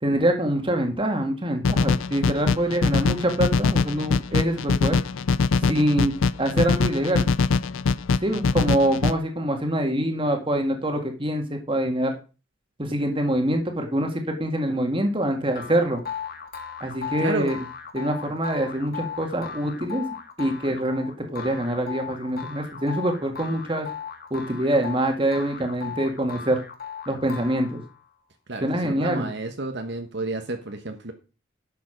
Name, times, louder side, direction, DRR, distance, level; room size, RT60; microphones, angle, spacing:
voice 1, 0.0-5.0 5.6-7.3 8.2-12.1 12.8-16.0 16.8-17.6 17.9-20.0 20.4-23.9 24.3-26.6 27.1-27.8 28.6-29.3, right 1 dB, 25° right, 4 dB, 1.9 m, -25 dB
sound 1, 1.6-9.1, left 4 dB, 75° left, 0.5 m, -23 dB
sound 2, 15.5-28.1, left 7 dB, 50° left, 1.6 m, -37 dB
voice 2, 17.2-17.6 28.5-31.1, right 2 dB, 55° right, 5 dB, 1.1 m, -31 dB
11.0 x 6.9 x 5.1 m, 0.33 s
head